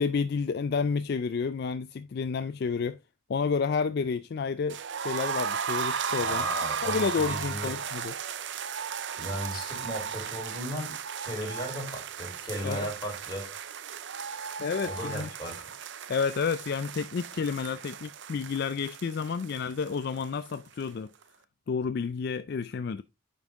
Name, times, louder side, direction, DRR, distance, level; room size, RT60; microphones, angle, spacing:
voice 1, 0.0-3.0 3.3-4.8 5.0-6.5 6.8-8.1 12.6-12.9 14.6-15.3 16.1-21.1 21.7-23.0, left 5 dB, 50° left, 0.3 m, -30 dB
sound 1, 4.7-20.5 20.8-20.9 21.2-21.3, right 7 dB, 55° right, 0.5 m, -35 dB
voice 2, 6.2-7.7 9.2-13.5 14.8-15.7, equal, 20° left, 3.8 m, -36 dB
9.4 x 5.3 x 3.5 m
head